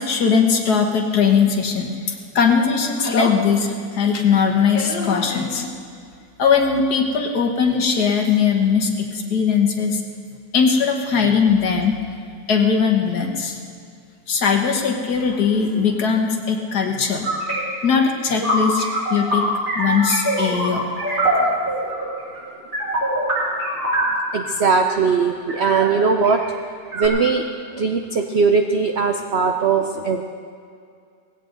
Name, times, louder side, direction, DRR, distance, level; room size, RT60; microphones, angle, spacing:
voice 1, 0.0-5.7 6.4-10.0 10.5-12.0 12.5-13.6 14.3-17.3 17.8-19.5 19.8-20.8 21.4-21.5, left 6 dB, 60° left, 3 dB, 1.8 m, -19 dB
sound 1, 17.2-24.3 24.9-25.1 25.5-26.4 26.9-27.1, right 1 dB, 45° right, 5.1 m, -23 dB
voice 2, 24.3-26.4 26.9-30.2, right 5 dB, 65° right, 5 dB, 0.6 m, -19 dB
19.0 x 16.5 x 3.9 m, 2.3 s
omnidirectional pair, 2.0 m